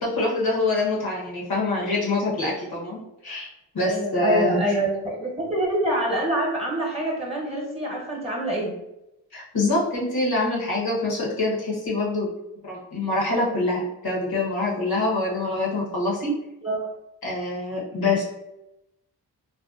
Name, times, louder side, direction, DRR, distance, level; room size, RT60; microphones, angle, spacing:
voice 1, 0.0-3.5 3.7-4.6 9.3-12.3 12.6-16.3 17.2-18.2, left 2 dB, 60° left, -4 dB, 0.9 m, -25 dB
voice 2, 3.9-8.7 16.6-16.9, right 1 dB, 15° right, -3 dB, 1.0 m, -25 dB
2.6 x 2.1 x 2.4 m, 0.89 s
supercardioid pair, 40°, 42 cm